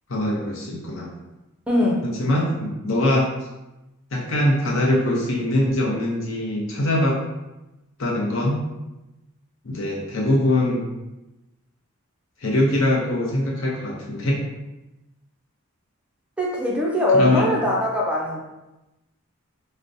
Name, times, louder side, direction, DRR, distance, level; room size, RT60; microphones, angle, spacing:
voice 1, 0.1-1.1 2.2-3.3 4.1-7.2 8.0-8.6 9.6-10.9 12.4-14.4 17.1-17.5, left 1 dB, 65° left, -3 dB, 0.8 m, -22 dB
voice 2, 1.7-2.1 16.4-18.4, left 1 dB, 5° right, -4 dB, 0.4 m, -21 dB
4.8 x 2.2 x 2.6 m, 0.99 s
head